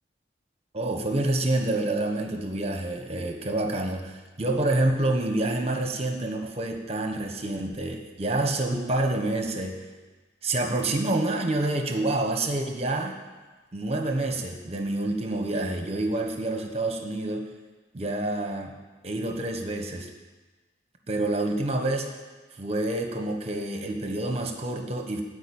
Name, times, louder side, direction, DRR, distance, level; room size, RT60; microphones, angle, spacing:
voice 1, 0.7-9.8 10.4-13.1 13.7-17.4 17.9-18.7 19.0-20.1 21.1-22.2 22.6-25.2, right 2 dB, 35° right, 4 dB, 1.2 m, -27 dB
13.5 x 5.0 x 8.6 m, 1.3 s
head